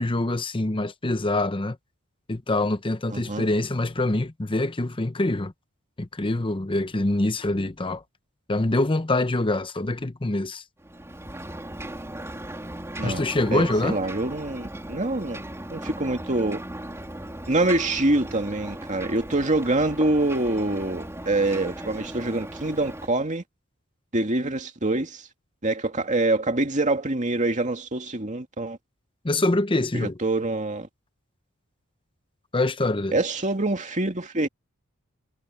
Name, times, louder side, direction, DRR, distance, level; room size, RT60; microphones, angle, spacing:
voice 1, 0.0-1.8 2.3-5.5 6.0-8.0 8.5-10.6 13.0-14.0 29.2-30.2 32.5-33.2, left 2 dB, 25° left, 0.8 m, -25 dB
voice 2, 3.1-3.4 13.0-13.2 13.5-15.4 15.7-16.6 17.5-23.4 24.1-25.3 25.6-28.8 29.9-30.9 33.1-34.5, right 2 dB, 35° right, 2.4 m, -25 dB
Ocean, 10.8-23.1, right 1 dB, 15° right, 3.4 m, -37 dB
head